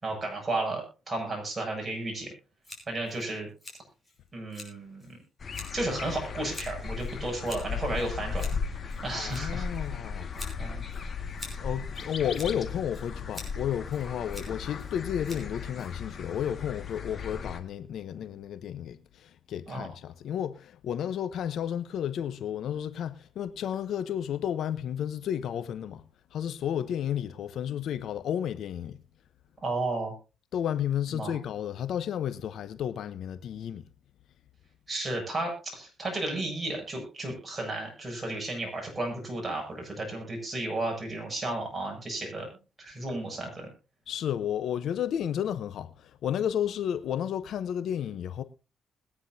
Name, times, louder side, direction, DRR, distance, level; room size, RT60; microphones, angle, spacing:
voice 1, 0.0-2.3 2.9-3.5 4.3-5.2 5.7-8.4 9.0-9.7 10.6-10.8 19.7-19.9 29.6-30.1 31.1-31.3 34.9-42.5 42.8-43.7, right 2 dB, 25° right, 7.4 m, -33 dB
Scissors, 2.6-16.3, left 2 dB, 15° left, 5.4 m, -48 dB
sound 1, 5.4-17.6, left 5 dB, 45° left, 1.8 m, -36 dB
voice 2, 9.1-10.3 11.6-26.0 26.3-29.0 30.5-33.8 44.1-48.4, left 9 dB, 70° left, 0.9 m, -32 dB
21.0 x 9.9 x 2.8 m
cardioid pair, 90°, 0 cm